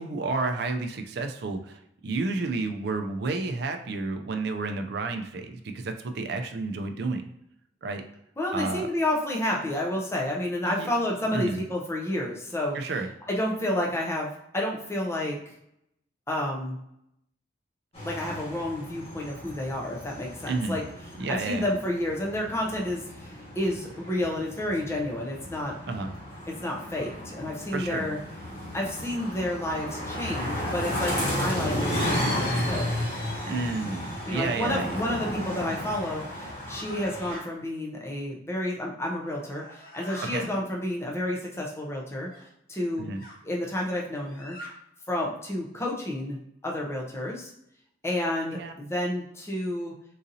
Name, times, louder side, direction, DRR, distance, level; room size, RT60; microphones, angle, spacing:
voice 1, 0.0-7.2 7.8-8.0 8.5-8.9 10.7-10.9 11.3-11.6 12.7-13.1 20.5-20.8 21.2-21.7 25.9-26.1 27.7-28.0 33.4-34.9 40.3-40.5 43.0-43.2 48.5-48.7, right 3 dB, 55° right, 6 dB, 0.4 m, -31 dB
voice 2, 8.4-12.8 13.3-15.4 16.3-16.8 18.0-20.8 21.3-25.7 26.5-28.2 28.7-32.9 34.3-42.3 42.7-43.1 43.4-44.6 45.1-47.5 48.0-49.9, left 1 dB, 15° left, -2 dB, 0.5 m, -30 dB
sound 1, 17.9-37.3, left 1 dB, 30° left, 1.3 m, -33 dB
sound 2, 29.1-29.3 30.2-31.0 32.1-32.8 34.5-34.7 35.6-35.8 36.5-37.4 39.2-40.5 42.3-42.4 43.2-43.4 44.2-44.7, equal, 45° left, 0.9 m, -45 dB
3.9 x 2.6 x 2.6 m, 0.78 s
head